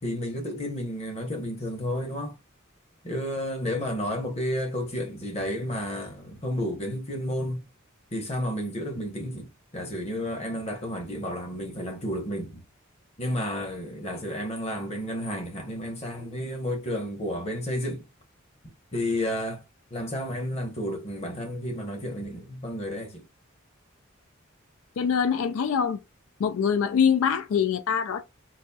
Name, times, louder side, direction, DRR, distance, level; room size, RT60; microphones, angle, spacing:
voice 1, 0.0-2.4 3.0-7.6 8.1-12.6 13.2-18.0 18.9-19.6 19.9-23.2, equal, 30° left, 0.9 m, -31 dB
voice 2, 25.0-26.0 26.4-28.2, left 7 dB, 80° left, 0.4 m, -24 dB
4.1 x 2.5 x 2.3 m
head